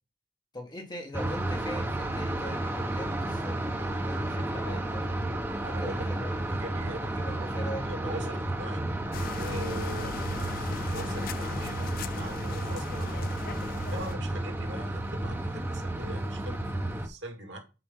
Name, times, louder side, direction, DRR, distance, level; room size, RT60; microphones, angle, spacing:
voice 1, 0.5-5.3 5.6-6.3 7.0-8.4, left 1 dB, 25° left, 1.6 m, -41 dB
sound 1, 1.1-17.1, right 1 dB, 10° right, 0.9 m, -32 dB
voice 2, 5.5-6.1 6.5-8.9 9.4-13.2 13.8-17.6, right 1 dB, 70° right, 2.1 m, -42 dB
sound 2, 9.1-14.2, left 6 dB, 50° left, 0.3 m, -39 dB
8.1 x 5.0 x 3.8 m
head